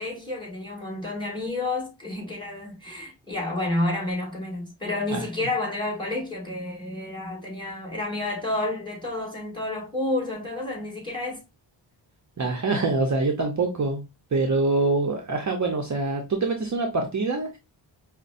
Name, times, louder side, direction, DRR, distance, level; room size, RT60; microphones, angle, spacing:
voice 1, 0.0-11.4, left 2 dB, 10° left, 2.0 m, -30 dB
voice 2, 12.4-14.0 14.3-17.6, right 3 dB, 40° right, 0.7 m, -25 dB
5.2 x 2.2 x 2.5 m
cardioid pair, 65°, 47 cm